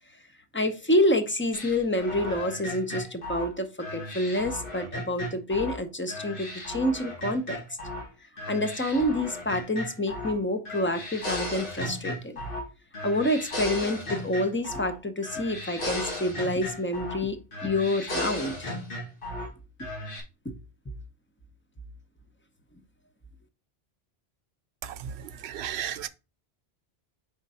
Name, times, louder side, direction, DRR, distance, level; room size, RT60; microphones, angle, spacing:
voice 1, 0.5-7.6 8.5-12.4 13.0-18.7 20.4-20.5, left 1 dB, 15° left, 0.7 m, -28 dB
sound 1, 1.5-5.8 6.1-8.1 8.4-10.4 10.6-12.7 12.9-15.0 15.2-17.2 17.5-19.5 19.8-20.2, left 1 dB, 55° left, 1.8 m, -35 dB
voice 2, 25.4-26.1, right 10 dB, 85° right, 0.9 m, -33 dB
5.2 x 3.7 x 5.5 m
omnidirectional pair, 1.1 m